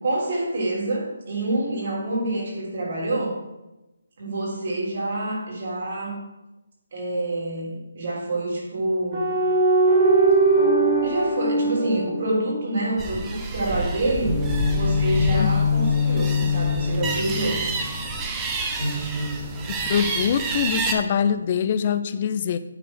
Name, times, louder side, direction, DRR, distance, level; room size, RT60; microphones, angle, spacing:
voice 1, 0.0-3.4 4.2-6.2 6.9-9.2 11.0-14.4 14.7-17.6, right 2 dB, 45° right, -4 dB, 3.3 m, -27 dB
sound 1, 9.1-12.8 14.2-18.0 18.8-20.0, equal, 30° right, 2.6 m, -22 dB
sound 2, 13.0-20.9, right 2 dB, 10° right, 0.6 m, -29 dB
voice 2, 15.3-15.7 19.9-22.6, left 8 dB, 30° left, 11 dB, 0.4 m, -24 dB
9.2 x 4.1 x 6.1 m, 0.99 s
hypercardioid pair, 170°, 0 cm